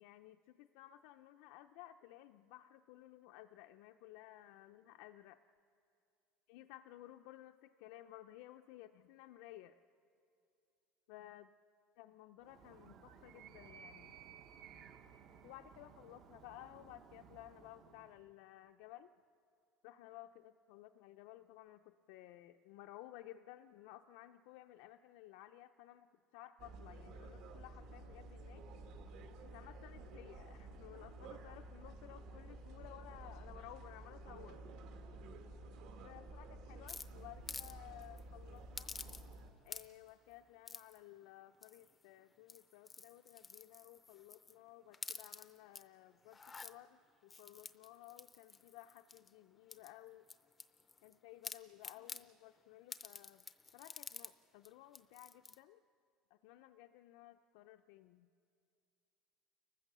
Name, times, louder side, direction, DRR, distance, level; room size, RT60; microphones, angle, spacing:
voice 1, 0.0-5.4 6.5-9.8 11.1-11.5 12.0-14.2 15.4-19.1 19.8-26.1 26.3-28.6 29.4-34.6 36.0-38.9 39.6-50.2 51.0-53.5 53.7-55.8 56.3-58.3, left 14 dB, 65° left, 7 dB, 0.5 m, -56 dB
Animal, 12.4-18.3, right 7 dB, 35° right, 0.7 m, -58 dB
sound 1, 26.6-39.5, right 2 dB, 55° right, 1.8 m, -52 dB
sound 2, 36.9-37.7 38.0-38.2 38.8-39.4 39.7-40.1 40.7-41.0 41.6-42.0 42.4-44.5 44.9-45.8 46.3-46.7 47.3-49.3 49.7-51.1 51.4-52.2 52.9-54.3 54.6-54.7 54.9-55.6, left 4 dB, 10° left, 0.5 m, -49 dB
30.0 x 15.0 x 6.7 m, 2.5 s
cardioid pair, 175°, 0 cm